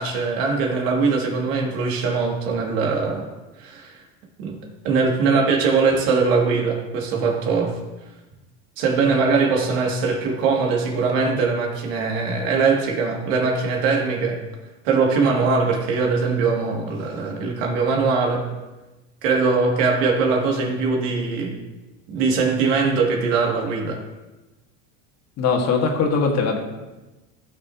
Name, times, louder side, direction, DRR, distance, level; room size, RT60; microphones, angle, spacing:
voice 1, 0.0-3.3 3.6-4.0 4.4-4.5 4.8-7.8 8.8-14.4 14.8-18.4 19.2-21.6 22.1-24.0, right 4 dB, 70° right, 0 dB, 2.2 m, -21 dB
voice 2, 25.4-26.6, left 5 dB, 40° left, 2 dB, 1.6 m, -20 dB
15.5 x 6.5 x 2.8 m, 1.1 s
supercardioid pair, 140°, 40 cm